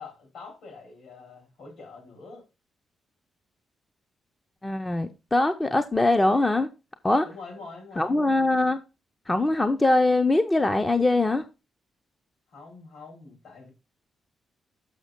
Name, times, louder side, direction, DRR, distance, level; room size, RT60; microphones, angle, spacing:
voice 1, 0.0-2.4 7.2-8.2 12.5-13.7, left 4 dB, 70° left, 4.5 m, -45 dB
voice 2, 4.6-6.7 7.0-7.3 8.0-8.8 9.3-11.4, left 2 dB, 15° left, 0.5 m, -22 dB
6.4 x 6.3 x 5.1 m
wide cardioid pair, 170°, 0 cm